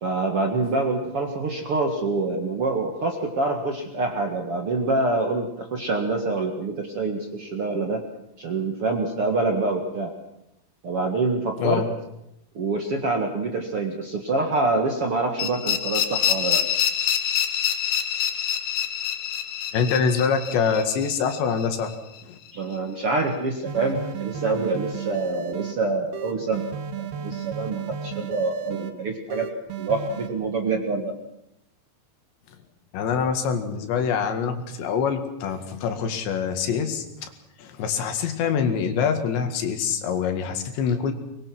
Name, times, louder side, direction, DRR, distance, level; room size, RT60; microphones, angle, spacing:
voice 1, 0.0-8.0 8.4-10.1 10.8-11.9 12.5-16.7 22.5-26.6 27.0-29.5 29.8-31.2, right 3 dB, 50° right, 3 dB, 1.8 m, -26 dB
sound 1, 15.4-22.2, left 9 dB, 60° left, 2.3 m, -26 dB
voice 2, 19.7-21.9 22.2-22.4 32.9-37.3 37.6-41.1, left 6 dB, 85° left, 6 dB, 4.2 m, -25 dB
sound 2, 23.7-25.7 26.1-28.9 29.3-30.3, right 8 dB, 65° right, 3.1 m, -33 dB
23.0 x 22.0 x 6.2 m, 0.83 s
omnidirectional pair, 5.0 m